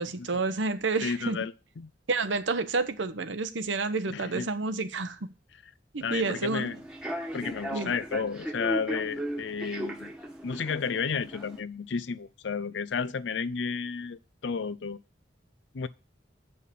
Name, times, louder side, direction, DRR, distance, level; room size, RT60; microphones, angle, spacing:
voice 1, 0.0-1.4 2.1-5.2 5.9-6.7 7.7-7.9, right 3 dB, 85° right, 0.9 m, -29 dB
voice 2, 1.0-1.9 4.1-4.5 6.0-6.8 7.3-10.1 10.4-15.0 15.7-15.9, left 5 dB, 75° left, 0.5 m, -32 dB
Human voice / Subway metro underground, 6.1-11.6, equal, 5° right, 1.3 m, -37 dB
8.4 x 5.5 x 6.8 m
head